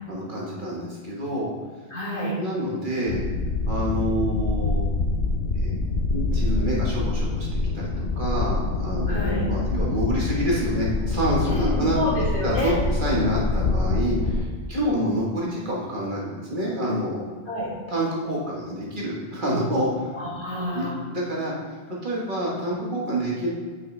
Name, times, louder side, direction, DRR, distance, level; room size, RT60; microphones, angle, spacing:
voice 1, 0.1-1.5 2.4-3.2 3.7-4.9 5.5-5.8 6.1-12.0 12.4-17.2 17.9-20.1 20.7-21.5 22.0-23.5, equal, 50° right, -5 dB, 1.4 m, -27 dB
voice 2, 1.9-2.4 9.1-9.5 11.4-12.8 14.7-15.1 17.5-17.7 20.1-21.0, left 1 dB, 50° left, -7 dB, 2.0 m, -28 dB
sound 1, 3.1-14.4, left 3 dB, 65° left, 0.8 m, -25 dB
8.4 x 5.0 x 3.2 m, 1.5 s
omnidirectional pair, 1.1 m